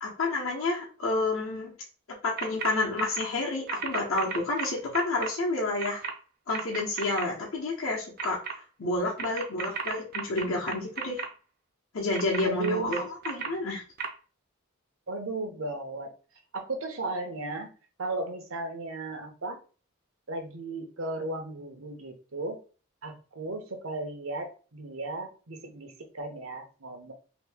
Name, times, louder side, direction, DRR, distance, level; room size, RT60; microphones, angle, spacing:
voice 1, 0.0-1.7 2.2-6.0 6.5-8.4 8.8-11.2 11.9-13.8, left 2 dB, 70° left, -3 dB, 0.9 m, -29 dB
sound 1, 2.4-2.7 3.0-3.2 3.7-5.3 5.8-6.1 6.5-7.2 8.2-8.5 9.2-11.3 12.1-13.5 14.0-14.1, right 6 dB, 45° right, 0.5 m, -33 dB
voice 2, 12.4-12.9 15.1-16.1 16.5-17.7 18.0-19.6 20.3-22.6 23.0-27.1, right 2 dB, 70° right, 4 dB, 0.8 m, -35 dB
2.9 x 2.7 x 3.5 m, 0.37 s
head